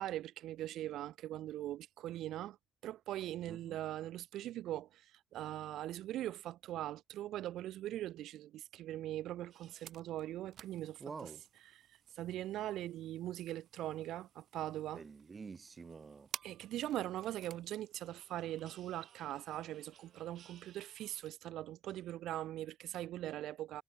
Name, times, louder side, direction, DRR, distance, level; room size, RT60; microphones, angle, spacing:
voice 1, 0.0-2.6 2.8-11.0 12.1-15.0 16.4-23.8, right 13 dB, 85° right, 1.0 m, -41 dB
sound 1, 9.5-21.3, right 10 dB, 65° right, 1.8 m, -56 dB
voice 2, 11.0-11.4 14.9-16.3, right 4 dB, 35° right, 2.5 m, -48 dB
cardioid pair, 90°, 0 cm